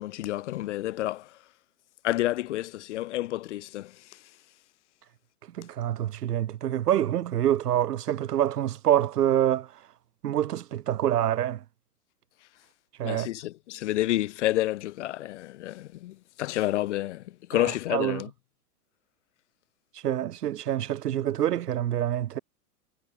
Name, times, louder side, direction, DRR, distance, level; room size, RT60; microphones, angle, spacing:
voice 1, 0.0-1.4 2.0-4.2 13.0-18.3, left 15 dB, 50° left, 0.5 m, -30 dB
voice 2, 5.6-9.7 10.2-11.6 13.0-13.3 17.5-18.2 20.0-22.4, right 11 dB, 80° right, 0.9 m, -26 dB
hypercardioid pair, 120°, 46 cm